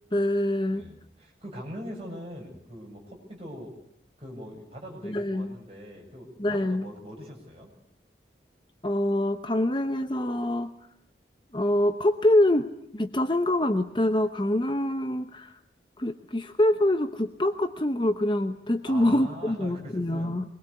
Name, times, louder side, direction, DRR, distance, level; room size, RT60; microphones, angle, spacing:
voice 1, 0.1-0.8 5.0-5.6 6.4-6.9 8.8-10.7 11.5-15.5 16.0-20.4, left 1 dB, 25° left, 8 dB, 0.9 m, -25 dB
voice 2, 0.7-3.8 4.2-7.7 18.8-20.3, equal, 35° right, -1 dB, 7.5 m, -42 dB
23.0 x 21.5 x 8.3 m, 0.70 s
head